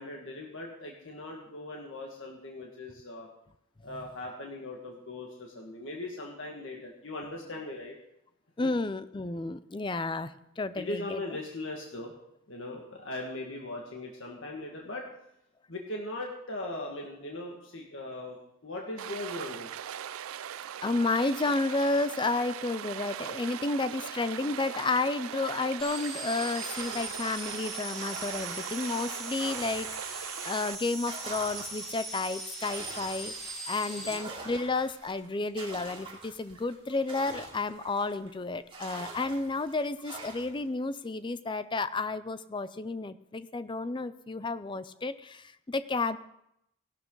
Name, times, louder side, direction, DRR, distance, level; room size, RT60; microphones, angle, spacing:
voice 1, 0.0-3.3 3.8-8.0 10.8-12.1 12.5-15.1 15.7-18.4 18.6-19.8 33.9-34.2, left 2 dB, 65° left, -1 dB, 1.8 m, -39 dB
voice 2, 8.6-11.2 20.8-46.2, left 3 dB, 25° left, 13 dB, 0.4 m, -31 dB
Stream, 19.0-30.8, right 9 dB, 85° right, 0.4 m, -40 dB
sound 1, 25.8-34.2, right 2 dB, ahead, 3.3 m, -40 dB
sound 2, 26.6-30.4 30.8-38.3 38.7-40.7, right 3 dB, 25° right, 2.8 m, -45 dB
17.0 x 12.0 x 3.9 m, 0.77 s
head